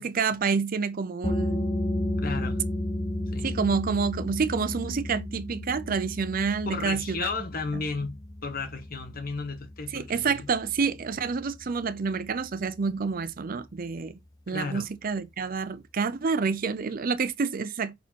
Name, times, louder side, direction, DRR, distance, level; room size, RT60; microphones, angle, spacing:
voice 1, 0.0-1.6 3.4-7.3 7.7-7.8 9.9-14.2 14.5-17.9, right 5 dB, 45° right, 0.5 m, -28 dB
sound 1, 1.2-12.6, left 1 dB, 20° left, 0.9 m, -33 dB
voice 2, 2.2-2.6 3.3-3.5 6.6-10.5 14.5-14.9, left 4 dB, 45° left, 1.2 m, -34 dB
5.6 x 4.2 x 4.5 m
head